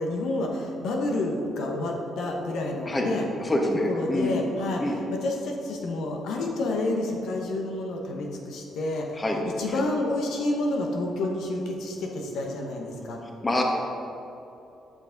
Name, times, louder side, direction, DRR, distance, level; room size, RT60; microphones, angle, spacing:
voice 1, 0.0-3.3 3.8-13.2, left 2 dB, 80° left, 1 dB, 0.9 m, -29 dB
voice 2, 3.4-4.4 4.8-5.0 9.2-9.4 9.7-9.8 13.4-13.6, left 1 dB, 25° left, 1 dB, 1.1 m, -26 dB
8.9 x 5.7 x 3.8 m, 2.9 s
cardioid pair, 90°, 0 cm